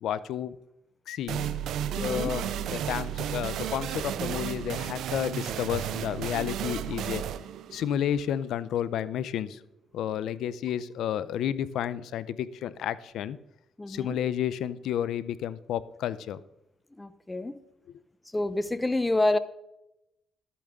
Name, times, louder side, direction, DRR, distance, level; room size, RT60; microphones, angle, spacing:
voice 1, 0.0-0.6 1.1-1.5 2.0-7.2 7.7-9.6 9.9-13.4 13.9-16.4, left 10 dB, 80° left, 17 dB, 0.5 m, -31 dB
sound 1, 1.3-8.7, right 10 dB, 80° right, 0.5 m, -33 dB
voice 2, 2.0-2.3 13.8-14.2 17.0-17.6 18.3-19.4, left 2 dB, 15° left, 14 dB, 0.8 m, -27 dB
12.0 x 8.6 x 3.7 m, 0.87 s
cardioid pair, 90°, 0 cm